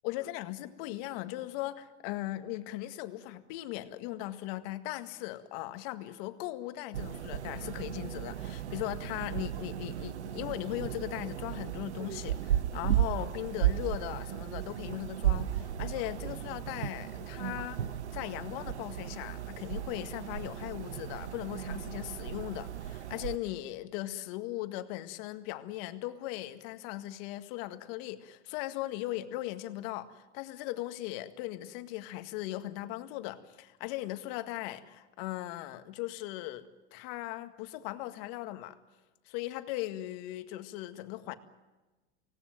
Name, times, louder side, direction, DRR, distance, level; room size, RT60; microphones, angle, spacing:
voice 1, 0.0-38.8 39.3-41.3, left 16 dB, 55° left, 8 dB, 1.9 m, -38 dB
sound 1, 6.9-23.4, right 11 dB, 90° right, 1.0 m, -35 dB
24.5 x 18.0 x 9.2 m, 1.2 s
hypercardioid pair, 110°, 33 cm